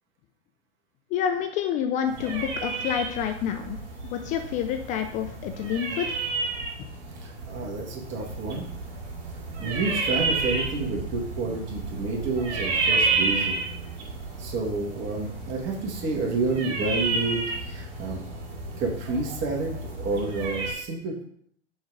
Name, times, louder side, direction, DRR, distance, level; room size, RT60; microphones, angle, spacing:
voice 1, 1.1-3.8 4.1-6.2, left 8 dB, 20° left, 6 dB, 0.3 m, -28 dB
sound 1, 2.1-20.7, right 3 dB, 55° right, 2.2 m, -31 dB
voice 2, 7.2-8.6 9.6-13.6 14.4-18.2 18.8-21.2, right 3 dB, 30° right, -1 dB, 1.7 m, -29 dB
6.3 x 3.9 x 4.9 m, 0.68 s
figure-of-eight pair, 100°, 36 cm